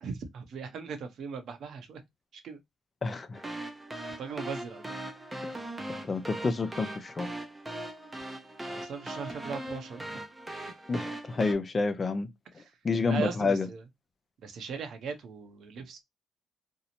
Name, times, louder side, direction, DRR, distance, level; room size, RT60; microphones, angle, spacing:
voice 1, 0.0-2.0 2.3-2.6 4.2-4.8 8.7-10.2 12.5-12.8 13.1-13.8 14.4-16.0, right 5 dB, 70° right, 0.7 m, -39 dB
voice 2, 3.0-3.4 5.4-5.6 6.0-7.3 10.9-12.3 12.5-13.7, left 4 dB, 35° left, 0.4 m, -29 dB
sound 1, 3.3-11.5, right 1 dB, 15° right, 0.5 m, -40 dB
2.6 x 2.0 x 2.8 m
cardioid pair, 90°, 0 cm